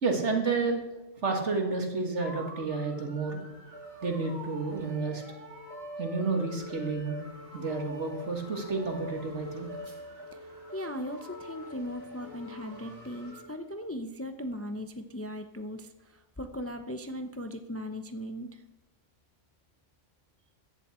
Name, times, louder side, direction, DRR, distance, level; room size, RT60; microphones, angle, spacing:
voice 1, 0.0-0.8 1.2-3.4 4.0-5.2 6.0-7.2 7.5-9.7, right 4 dB, 65° right, 3 dB, 2.3 m, -30 dB
sound 1, 2.2-13.4, left 1 dB, 25° right, 2.6 m, -44 dB
voice 2, 10.3-18.6, equal, 15° left, 7 dB, 0.6 m, -38 dB
15.0 x 11.0 x 4.4 m, 1.1 s
omnidirectional pair, 1.3 m